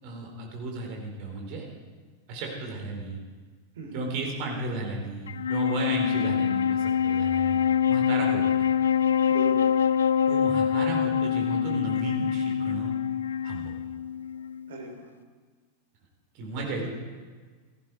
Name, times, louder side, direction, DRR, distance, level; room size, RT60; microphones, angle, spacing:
voice 1, 0.0-1.6 2.3-3.2 3.9-7.6 7.9-8.6 10.3-13.0 13.4-13.7 16.3-16.8, right 2 dB, 45° right, 0 dB, 4.0 m, -34 dB
voice 2, 3.7-4.1 9.3-9.7 14.7-15.1 16.5-16.9, right 2 dB, 60° right, 2 dB, 3.3 m, -39 dB
Wind instrument woodwind instrument, 5.3-14.8, left 8 dB, 65° left, 0.4 m, -25 dB
17.0 x 14.5 x 4.6 m, 1.5 s
figure-of-eight pair, 90°, 0 cm